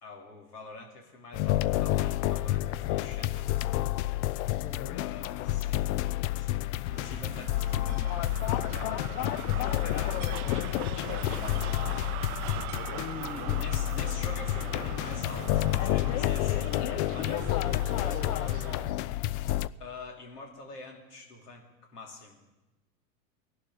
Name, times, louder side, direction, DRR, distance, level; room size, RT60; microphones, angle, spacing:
voice 1, 0.0-3.7 4.9-5.9 6.4-10.6 11.1-11.8 13.2-16.8 17.1-17.6 19.8-21.6 21.9-22.4, left 3 dB, 90° left, 0 dB, 3.3 m, -45 dB
sound 1, 1.3-19.7, left 16 dB, 50° left, 0.5 m, -30 dB
voice 2, 4.4-5.1 12.9-13.7 15.8-16.2 17.2-17.7 18.0-19.2, left 7 dB, 70° left, 3 dB, 1.6 m, -40 dB
sound 2, 6.9-19.0, right 16 dB, 70° right, 0.6 m, -41 dB
17.5 x 11.5 x 4.8 m, 1.0 s
hypercardioid pair, 110°, 45 cm